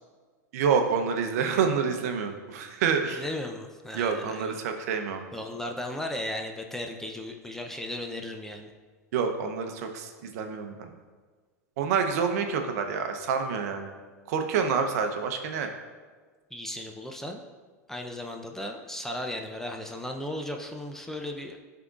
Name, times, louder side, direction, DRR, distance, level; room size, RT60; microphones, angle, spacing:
voice 1, 0.5-3.2 3.9-5.2 9.1-10.9 11.8-13.9 14.3-15.7, right 6 dB, 65° right, 6 dB, 0.7 m, -27 dB
voice 2, 3.1-4.5 5.3-8.7 16.5-17.4 17.9-21.6, left 1 dB, 5° left, 2 dB, 0.5 m, -36 dB
11.0 x 3.7 x 2.4 m, 1.5 s
hypercardioid pair, 100°, 9 cm